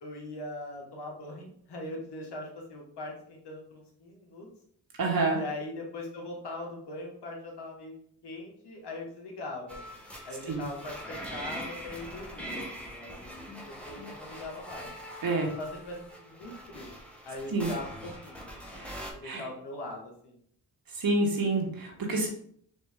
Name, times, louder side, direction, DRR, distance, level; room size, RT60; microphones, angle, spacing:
voice 1, 0.0-4.5 5.3-7.9 8.2-9.8 10.2-14.9 15.6-16.0 16.2-16.9 17.2-18.5 19.1-20.4, left 2 dB, 75° left, -1 dB, 1.3 m, -41 dB
voice 2, 5.0-5.4 10.5-10.6 15.2-15.5 17.5-17.7 18.7-18.9 19.2-19.4 20.9-22.3, right 2 dB, 60° right, 0 dB, 1.3 m, -28 dB
sound 1, 9.7-19.1, equal, 5° left, 1.0 m, -43 dB
4.3 x 2.7 x 3.5 m, 0.64 s
cardioid pair, 50°, 40 cm